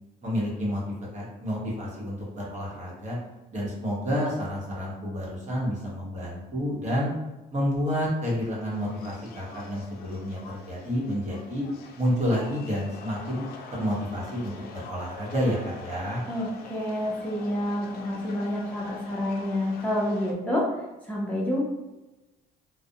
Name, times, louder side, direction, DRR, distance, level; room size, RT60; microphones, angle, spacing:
voice 1, 0.2-0.8 1.1-3.2 3.5-7.1 7.5-11.6 12.0-13.5 13.7-16.2, equal, 45° right, -4 dB, 0.9 m, -29 dB
sound 1, 8.7-20.3, left 4 dB, 65° left, 0.4 m, -45 dB
voice 2, 16.3-20.7 21.0-21.6, left 1 dB, 10° left, -6 dB, 0.5 m, -28 dB
2.3 x 2.0 x 2.7 m, 1.1 s
cardioid pair, 110°, 17 cm